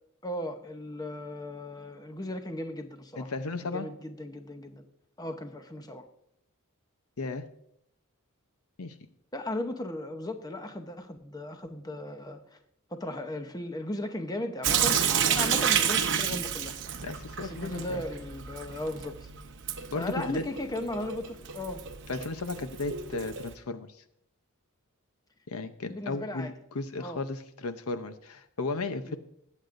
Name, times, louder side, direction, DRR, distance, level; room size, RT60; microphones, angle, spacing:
voice 1, 0.2-3.3 3.6-4.8 5.2-6.0 9.3-12.6 12.9-16.8 17.4-19.3 19.9-21.8 25.8-26.5 27.0-27.2 29.1-29.2, left 1 dB, 15° left, 7 dB, 0.8 m, -36 dB
voice 2, 3.2-3.9 7.2-7.5 8.8-8.9 17.0-18.0 19.9-20.4 22.1-23.9 25.5-29.2, left 3 dB, 70° left, 10 dB, 0.8 m, -35 dB
Sink (filling or washing) / Drip, 14.6-23.5, right 8 dB, 55° right, 0.8 m, -30 dB
20.0 x 8.2 x 2.6 m, 0.75 s
head